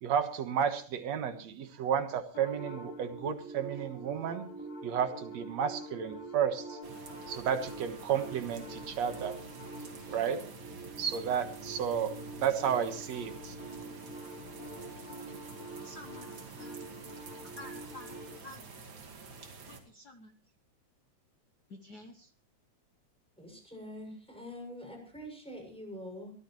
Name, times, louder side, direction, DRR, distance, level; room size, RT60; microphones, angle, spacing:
voice 1, 0.0-4.5 4.8-6.8 7.3-9.4 10.1-10.5 11.0-13.5, right 8 dB, 65° right, 2.5 m, -32 dB
sound 1, 2.3-18.3, right 2 dB, 65° left, 6.7 m, -46 dB
sound 2, 6.8-19.8, right 3 dB, 40° right, 2.7 m, -48 dB
voice 2, 15.8-16.3 16.6-17.1 17.6-18.2 18.4-18.7 19.7-20.3 21.7-22.3, left 1 dB, 90° left, 0.8 m, -50 dB
voice 3, 23.4-26.3, equal, ahead, 6.7 m, -45 dB
23.0 x 15.0 x 3.2 m
omnidirectional pair, 3.5 m